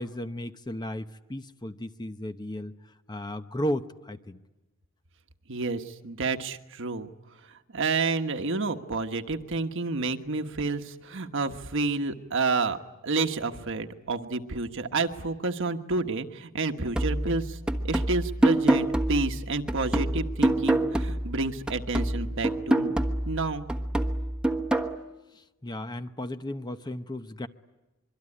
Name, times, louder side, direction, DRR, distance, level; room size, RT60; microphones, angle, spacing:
voice 1, 0.0-2.8 3.1-4.4 25.3-27.5, left 1 dB, 20° left, 9 dB, 0.9 m, -34 dB
voice 2, 5.5-7.1 7.7-12.8 13.0-17.6 17.8-22.9 23.3-23.7, right 3 dB, 65° right, 7 dB, 1.4 m, -29 dB
sound 1, 16.9-21.4 21.7-24.9, right 1 dB, 5° right, 1.2 m, -26 dB
25.0 x 23.5 x 10.0 m, 1.0 s
head